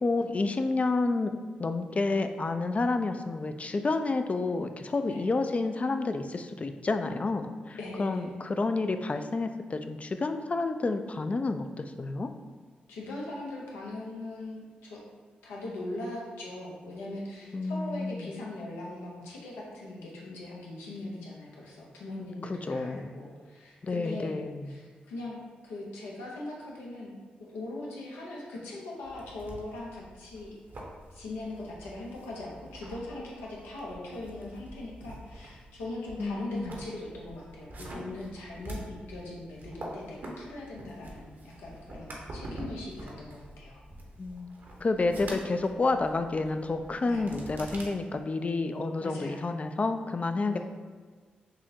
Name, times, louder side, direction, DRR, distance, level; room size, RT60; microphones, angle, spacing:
voice 1, 0.0-1.3 1.6-12.3 17.5-18.3 22.4-23.2 23.8-24.7 36.2-36.8 44.2-44.5 44.8-50.6, left 3 dB, 35° left, 8 dB, 0.3 m, -30 dB
voice 2, 7.8-8.2 12.9-15.0 15.4-24.4 24.7-27.1 27.4-30.5 31.1-43.8 47.0-47.2 49.0-49.4 50.5-50.6, left 2 dB, 90° left, -4 dB, 0.7 m, -40 dB
sound 1, 29.0-47.9, right 1 dB, 60° right, 0.9 m, -46 dB
6.1 x 2.1 x 2.7 m, 1.5 s
supercardioid pair, 40°, 4 cm